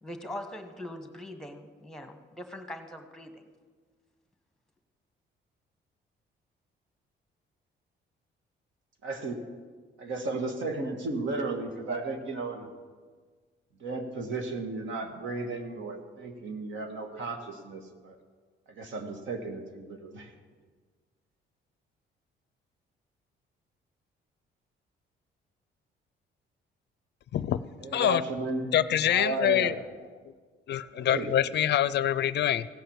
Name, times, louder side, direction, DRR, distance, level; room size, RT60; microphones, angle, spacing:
voice 1, 0.0-3.4, left 1 dB, 5° left, 6 dB, 1.3 m, -41 dB
voice 2, 9.0-9.5 10.0-12.7 13.8-18.2 18.7-20.3 27.8-28.7 29.1-29.7 30.9-31.3, right 3 dB, 75° right, 5 dB, 1.6 m, -34 dB
voice 3, 28.7-29.8 30.7-32.7, left 11 dB, 60° left, 16 dB, 0.4 m, -25 dB
16.0 x 5.8 x 7.2 m, 1.5 s
cardioid pair, 90°, 20 cm